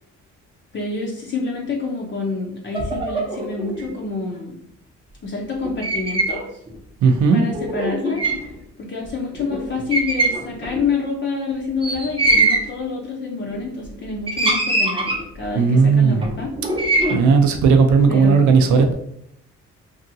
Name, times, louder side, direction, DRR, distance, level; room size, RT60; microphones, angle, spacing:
voice 1, 0.7-4.5 5.2-6.6 7.3-8.5 8.8-15.1 15.3-16.5 18.1-18.6, left 4 dB, 40° left, -2 dB, 0.6 m, -27 dB
sound 1, 2.7-3.9 5.6-6.4 6.7-6.8 7.5-8.5 9.0-9.1 9.3-9.6 9.9-10.8 11.8-12.7 13.5-13.9 14.3-15.5 16.2-17.2, right 2 dB, 20° right, 0.6 m, -22 dB
voice 2, 7.0-7.4 15.5-16.3 17.1-18.9, right 5 dB, 75° right, 4 dB, 0.5 m, -15 dB
2.8 x 2.6 x 2.6 m, 0.71 s
cardioid pair, 90°, 30 cm